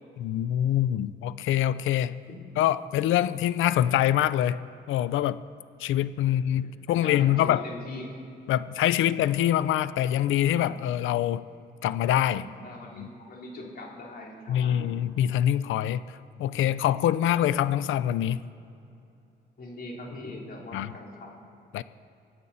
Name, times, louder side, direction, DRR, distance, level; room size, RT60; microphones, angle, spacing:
voice 1, 0.2-2.2 2.6-5.4 5.8-7.6 8.5-11.4 11.8-12.4 13.0-13.1 14.5-18.4 20.7-20.9 21.7-21.8, left 11 dB, 80° left, 16 dB, 0.5 m, -25 dB
voice 2, 6.3-8.1 9.0-9.1 10.7-10.8 12.5-15.0 19.6-21.4, left 2 dB, 50° left, -2 dB, 3.4 m, -41 dB
25.0 x 8.9 x 4.1 m, 2.7 s
cardioid pair, 90°, 20 cm